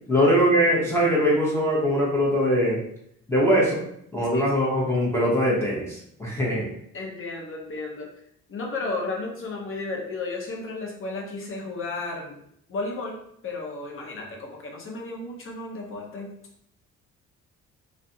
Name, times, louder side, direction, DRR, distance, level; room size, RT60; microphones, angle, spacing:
voice 1, 0.1-2.8 3.3-3.8 4.1-6.7, equal, 10° left, -5 dB, 0.7 m, -22 dB
voice 2, 6.9-8.1 8.5-12.4 12.7-16.3, left 3 dB, 45° left, 0 dB, 0.8 m, -33 dB
2.4 x 2.1 x 2.6 m, 0.71 s
cardioid pair, 90°, 30 cm